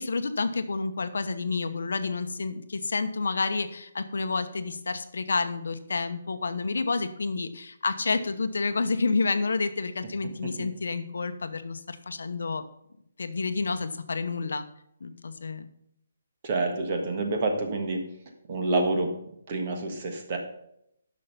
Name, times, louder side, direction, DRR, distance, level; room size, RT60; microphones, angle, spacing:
voice 1, 0.0-12.6 13.2-14.7 15.0-15.7, left 4 dB, 80° left, 10 dB, 0.9 m, -29 dB
voice 2, 16.4-18.1 18.5-19.1 19.5-20.4, right 2 dB, 30° right, 4 dB, 1.5 m, -28 dB
10.0 x 6.4 x 5.6 m, 0.76 s
hypercardioid pair, 175°, 0 cm